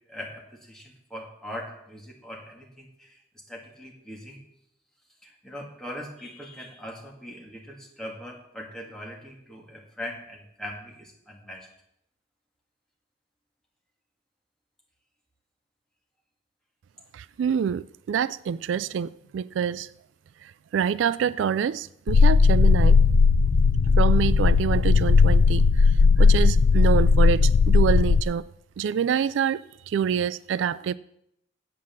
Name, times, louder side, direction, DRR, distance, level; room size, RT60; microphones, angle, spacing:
voice 1, 0.1-3.2 3.5-4.4 5.2-11.7, left 1 dB, 5° left, 1.9 m, -41 dB
voice 2, 17.1-19.9 20.7-23.0 24.0-25.9 26.2-28.5 28.8-30.9, right 7 dB, 80° right, 0.3 m, -26 dB
sound 1, 22.1-28.2, left 4 dB, 80° left, 0.3 m, -17 dB
8.5 x 7.6 x 7.3 m
head